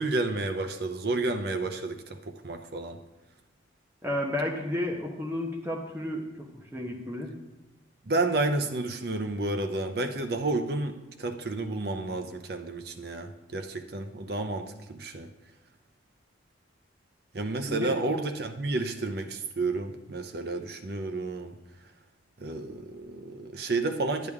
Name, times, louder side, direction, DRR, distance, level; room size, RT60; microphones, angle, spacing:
voice 1, 0.0-3.0 8.0-15.3 17.3-21.6 22.4-24.3, right 2 dB, 55° right, 6 dB, 0.7 m, -31 dB
voice 2, 4.0-7.3 17.7-17.9, left 1 dB, 10° right, 0 dB, 1.1 m, -32 dB
10.5 x 9.2 x 3.6 m, 1.0 s
head